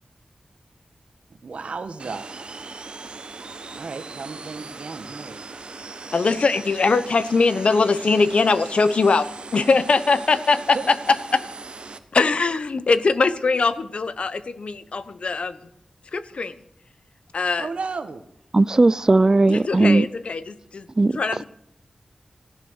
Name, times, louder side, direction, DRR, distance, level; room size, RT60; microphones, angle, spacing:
voice 1, 1.4-2.5 3.8-5.4 10.7-10.8 17.6-18.2, right 4 dB, 80° right, 1.4 m, -33 dB
sound 1, 2.0-12.0, right 4 dB, 60° right, 1.2 m, -39 dB
voice 2, 6.1-11.4 12.1-15.6 16.1-16.6 17.3-17.7 19.5-20.9 21.1-21.4, left 4 dB, 70° left, 1.0 m, -21 dB
voice 3, 18.5-20.1 21.0-21.2, right 2 dB, 30° right, 0.5 m, -17 dB
17.5 x 15.5 x 4.8 m
wide cardioid pair, 95°, 2 cm